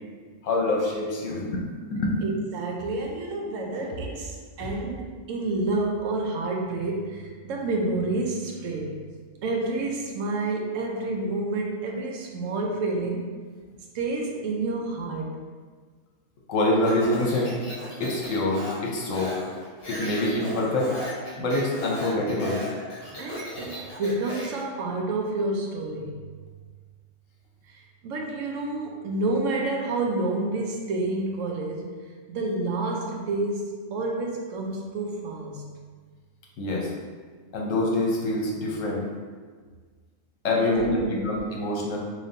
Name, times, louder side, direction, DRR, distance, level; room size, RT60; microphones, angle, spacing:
voice 1, 0.4-1.7 1.9-2.2 16.5-17.5 18.0-19.3 19.9-20.9 21.4-22.6 36.6-36.9 37.5-39.0 40.4-42.0, left 2 dB, 75° left, -2 dB, 1.1 m, -25 dB
voice 2, 2.2-9.0 9.4-13.3 13.9-15.4 23.2-26.1 27.7-32.0 32.3-35.6 40.6-41.2, right 2 dB, 75° right, 0 dB, 1.0 m, -29 dB
Speech, 16.8-24.6, equal, 50° left, 1.3 m, -36 dB
4.0 x 3.2 x 2.7 m, 1.5 s
omnidirectional pair, 1.3 m